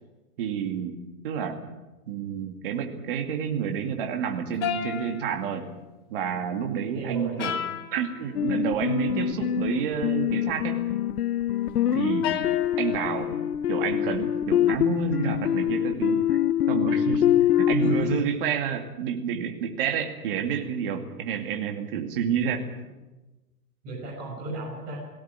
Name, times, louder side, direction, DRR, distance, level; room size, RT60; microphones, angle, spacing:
voice 1, 0.4-1.0 1.2-1.6 2.1-5.7 6.1-7.6 7.9-10.9 11.9-12.3 12.8-13.4 13.7-16.4 16.7-17.3 17.7-22.7, right 7 dB, 35° right, 4 dB, 2.3 m, -29 dB
sound 1, 4.6-5.8 7.4-8.2 12.2-13.2, left 9 dB, 15° left, 0.7 m, -32 dB
voice 2, 6.9-7.4 14.5-14.6 17.8-18.3 23.8-25.0, right 2 dB, 20° right, -4 dB, 6.0 m, -34 dB
sound 2, 8.3-18.2, left 10 dB, 70° left, 0.9 m, -25 dB
18.0 x 17.5 x 9.7 m, 1.1 s
hypercardioid pair, 165°, 47 cm